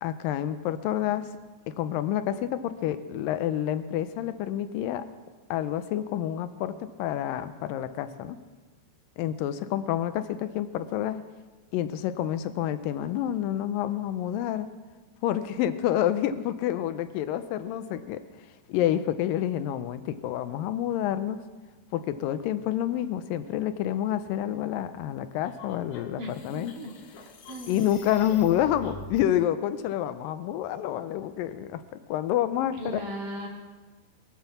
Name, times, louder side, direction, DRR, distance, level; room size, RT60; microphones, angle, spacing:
voice 1, 0.0-1.3 1.7-5.1 5.5-8.4 9.2-11.2 11.7-14.7 15.2-21.4 21.9-26.7 27.7-33.0, left 11 dB, 80° left, 11 dB, 2.0 m, -28 dB
sound 1, 25.4-29.2, left 4 dB, 65° left, 2.5 m, -45 dB
voice 2, 26.2-26.9 27.5-27.9 32.8-33.5, equal, 55° right, -2 dB, 3.9 m, -37 dB
22.5 x 7.8 x 7.0 m, 1.3 s
omnidirectional pair, 4.7 m